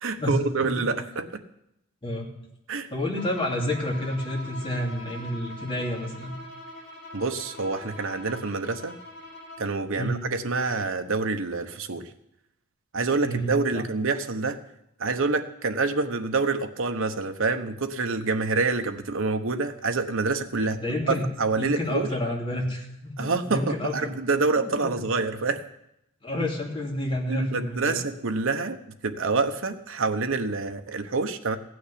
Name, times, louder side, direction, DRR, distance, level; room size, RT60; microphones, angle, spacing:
voice 1, 0.0-1.4 2.7-2.9 7.1-9.0 9.6-12.1 12.9-14.6 15.0-20.8 21.1-22.1 23.2-25.6 27.3-31.6, right 3 dB, 70° right, 7 dB, 1.0 m, -27 dB
voice 2, 2.9-6.3 10.0-10.2 13.2-13.8 20.6-21.2 21.6-24.1 24.6-24.7 26.2-28.0, left 1 dB, 25° left, -2 dB, 2.9 m, -29 dB
Bowed string instrument, 3.1-9.8, left 1 dB, 50° left, 4.2 m, -43 dB
15.5 x 6.3 x 9.9 m, 0.82 s
head